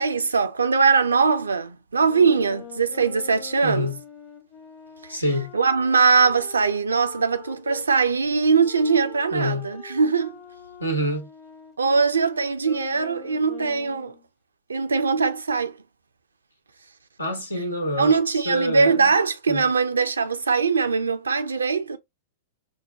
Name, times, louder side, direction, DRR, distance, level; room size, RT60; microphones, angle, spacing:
voice 1, 0.0-3.9 5.1-5.2 5.5-10.4 11.8-14.1 14.7-15.8 18.0-22.0, right 5 dB, 80° right, 0.5 m, -21 dB
sound 1, 2.1-7.9 8.6-14.2, left 8 dB, 35° left, 0.8 m, -44 dB
voice 2, 3.6-4.0 5.1-5.5 9.3-9.7 10.8-11.3 17.2-19.1 19.5-19.6, equal, 90° left, 1.0 m, -27 dB
4.5 x 2.2 x 2.7 m
figure-of-eight pair, 100°, 0 cm